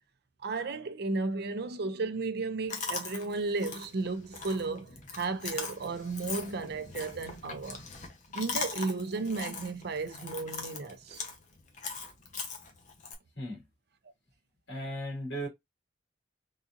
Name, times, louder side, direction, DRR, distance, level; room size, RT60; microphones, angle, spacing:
voice 1, 0.4-7.8 8.3-11.3, right 3 dB, 60° right, 0.5 m, -34 dB
Chewing mastication, 2.7-13.1, left 4 dB, 45° left, 0.9 m, -41 dB
voice 2, 14.7-15.5, equal, 70° left, 2.2 m, -36 dB
3.8 x 2.7 x 2.4 m
head